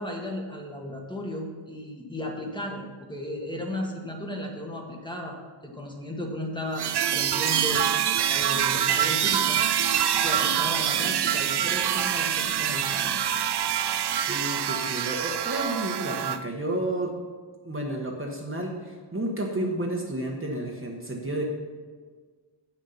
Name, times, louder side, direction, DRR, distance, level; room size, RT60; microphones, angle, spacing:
voice 1, 0.0-2.8 3.1-5.4 5.6-7.8 8.3-9.6 10.2-13.1, left 1 dB, 10° left, 0 dB, 1.4 m, -35 dB
sound 1, 6.8-16.4, right 9 dB, 55° right, 0.5 m, -25 dB
voice 2, 14.3-17.1 17.6-21.5, right 1 dB, 25° right, 0 dB, 1.1 m, -31 dB
8.6 x 6.5 x 5.7 m, 1.5 s
wide cardioid pair, 105°, 49 cm